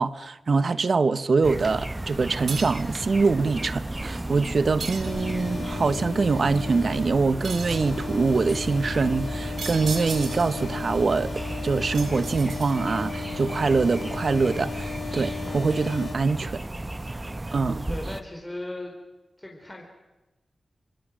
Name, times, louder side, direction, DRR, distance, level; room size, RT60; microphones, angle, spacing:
voice 1, 0.0-16.6 17.5-17.9, right 4 dB, 55° right, 15 dB, 1.0 m, -24 dB
sound 1, 1.4-18.2, right 1 dB, 20° right, 1.1 m, -34 dB
sound 2, 2.5-2.9 4.8-5.6 7.4-8.0 9.6-10.6 11.9-13.0, right 5 dB, 85° right, 3.7 m, -36 dB
sound 3, 5.0-16.2, left 5 dB, 60° left, 2.8 m, -35 dB
voice 2, 17.9-19.0 19.4-19.8, left 1 dB, 15° left, 0 dB, 4.4 m, -37 dB
27.0 x 26.0 x 6.4 m, 1.0 s
wide cardioid pair, 115°, 0 cm